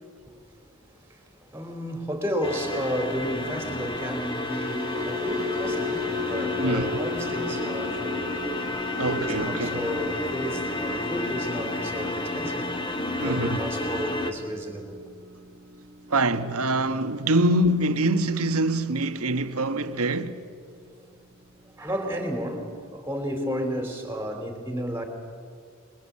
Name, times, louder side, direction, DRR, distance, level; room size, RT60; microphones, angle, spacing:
voice 1, 0.2-8.8 9.1-12.7 13.2-15.0 21.8-25.0, equal, 10° right, 3.5 m, -32 dB
sound 1, 2.4-14.3, left 2 dB, 20° left, 1.7 m, -31 dB
sound 2, 4.1-20.3 20.7-21.0 21.3-21.6, left 3 dB, 40° right, 1.2 m, -37 dB
voice 2, 6.6-7.0 9.0-9.9 13.2-13.6 16.1-20.4, right 1 dB, 80° right, 1.4 m, -24 dB
26.0 x 22.0 x 8.7 m
head